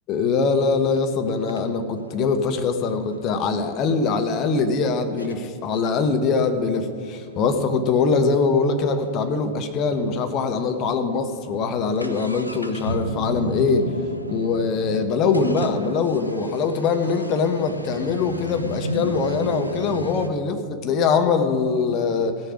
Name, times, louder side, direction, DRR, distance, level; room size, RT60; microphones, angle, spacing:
voice 1, 0.1-13.9 14.3-22.4, left 4 dB, 35° left, 7 dB, 1.0 m, -22 dB
sound 1, 0.9-1.0 1.5-4.1 4.7-4.8 5.2-5.4 5.7-9.4 9.7-9.8 10.0-10.1 10.7-10.8 11.1-20.3, right 1 dB, 90° left, 0.6 m, -33 dB
17.0 x 6.7 x 5.1 m, 2.1 s
figure-of-eight pair, 90°, 0 cm